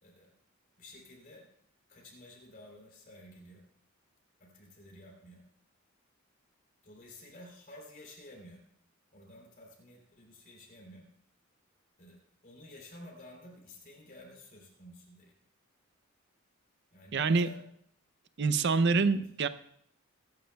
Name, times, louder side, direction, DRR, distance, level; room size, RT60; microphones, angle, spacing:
voice 1, 0.8-1.4 1.9-3.6 4.4-5.4 6.8-8.6 9.1-11.1 12.0-15.3 16.9-17.6 18.7-19.2, left 1 dB, 45° left, -1 dB, 3.3 m, -52 dB
voice 2, 17.1-17.5 18.4-19.5, right 4 dB, 55° right, 13 dB, 0.6 m, -26 dB
23.0 x 10.5 x 2.3 m, 0.67 s
head